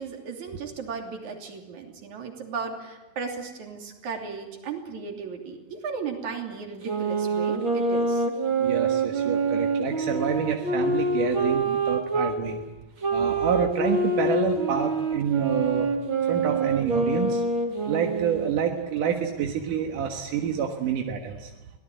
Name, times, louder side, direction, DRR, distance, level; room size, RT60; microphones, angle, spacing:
voice 1, 0.0-8.3 13.3-13.4, right 5 dB, 65° right, 3 dB, 4.3 m, -35 dB
sound 1, 6.8-12.4 13.0-18.6, right 3 dB, 40° right, 2.9 m, -26 dB
voice 2, 8.6-12.6 13.1-15.9 16.3-17.5 17.9-21.5, right 7 dB, 90° right, 3 dB, 3.1 m, -28 dB
24.5 x 18.0 x 9.2 m, 1.1 s
omnidirectional pair, 3.6 m